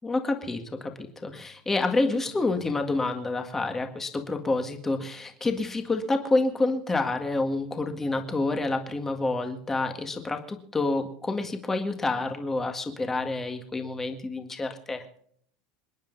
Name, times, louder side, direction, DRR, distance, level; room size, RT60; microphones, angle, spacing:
voice 1, 0.0-15.2, left 2 dB, 10° left, 6 dB, 1.8 m, -28 dB
27.0 x 10.5 x 4.0 m, 0.63 s
cardioid pair, 175°, 3 cm